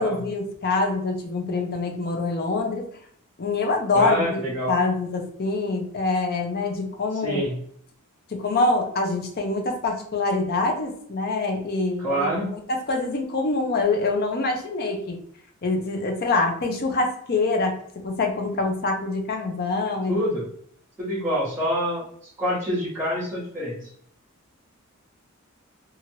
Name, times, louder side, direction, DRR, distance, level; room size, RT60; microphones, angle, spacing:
voice 1, 0.0-2.9 3.4-7.4 8.3-15.2 15.6-20.2, left 3 dB, 45° left, 3 dB, 0.5 m, -25 dB
voice 2, 3.9-4.7 7.2-7.5 12.0-12.5 20.1-20.5 21.0-22.0 22.4-23.8, equal, 5° right, -13 dB, 1.2 m, -26 dB
2.8 x 2.4 x 2.8 m, 0.64 s
head